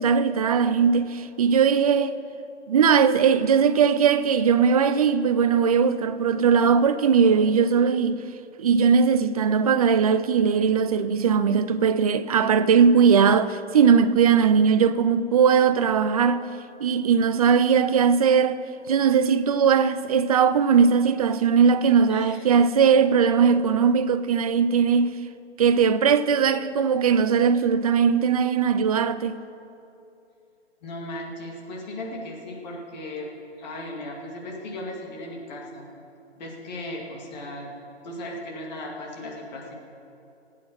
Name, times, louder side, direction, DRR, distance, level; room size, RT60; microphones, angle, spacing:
voice 1, 0.0-2.2 2.7-8.2 8.6-16.5 16.8-18.6 18.9-25.2 25.6-29.4, right 6 dB, 35° right, 0.6 m, -19 dB
voice 2, 22.1-22.5 30.8-33.3 33.6-35.9 36.4-37.7 38.0-39.7, left 1 dB, 40° left, 2.4 m, -36 dB
20.5 x 8.7 x 6.4 m
figure-of-eight pair, 135°, 34 cm